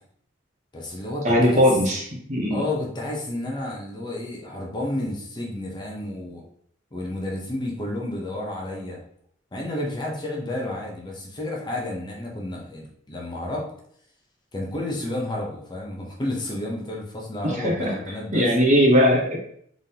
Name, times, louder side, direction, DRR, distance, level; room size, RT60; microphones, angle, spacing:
voice 1, 0.7-1.8 2.5-6.4 6.9-9.0 9.5-13.7 14.5-18.5, left 1 dB, 25° left, -2 dB, 0.7 m, -31 dB
voice 2, 1.2-2.0 2.3-2.6 17.4-17.9 18.3-19.4, equal, 40° right, -2 dB, 1.0 m, -19 dB
3.7 x 3.5 x 2.8 m, 0.66 s
head